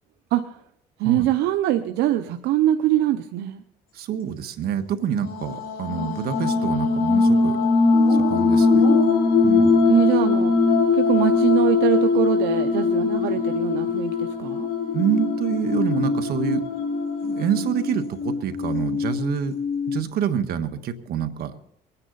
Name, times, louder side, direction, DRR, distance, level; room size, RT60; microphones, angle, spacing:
voice 1, 1.0-3.6 9.9-10.5 10.9-14.7, right 13 dB, 85° right, 8 dB, 0.7 m, -23 dB
voice 2, 3.9-7.6 8.1-8.9 9.4-9.9 14.9-16.6 17.2-19.5 19.9-21.5, right 8 dB, 70° right, 8 dB, 1.4 m, -27 dB
sound 1, 5.1-20.0, left 4 dB, 60° left, 3.0 m, -21 dB
23.0 x 9.8 x 4.0 m, 0.73 s
cardioid pair, 110°, 17 cm